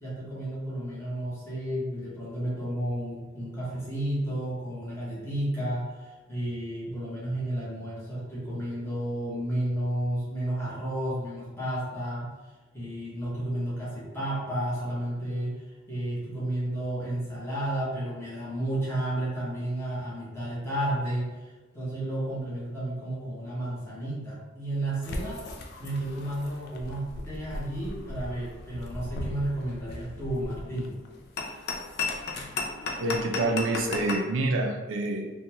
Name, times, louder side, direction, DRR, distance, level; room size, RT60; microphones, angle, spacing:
voice 1, 0.0-12.3 12.7-25.4 25.8-31.0, right 1 dB, 10° left, -8 dB, 1.0 m, -32 dB
sound 1, 25.0-34.2, left 3 dB, 55° left, 0.4 m, -36 dB
voice 2, 33.0-35.3, right 2 dB, 70° right, 3 dB, 0.4 m, -27 dB
3.7 x 2.2 x 2.9 m, 1.2 s
head